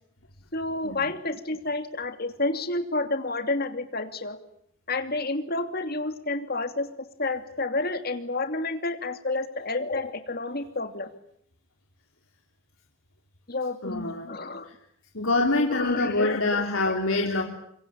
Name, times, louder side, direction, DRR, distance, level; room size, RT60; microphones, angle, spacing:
voice 1, 0.5-4.4 4.9-6.9 7.2-11.1 13.5-14.7 15.7-16.9 17.3-17.4, left 2 dB, 45° left, 8 dB, 2.9 m, -30 dB
voice 2, 13.8-14.3 14.6-14.8 15.1-17.4, left 2 dB, 75° left, 1 dB, 3.5 m, -25 dB
26.5 x 23.5 x 8.7 m, 0.70 s
head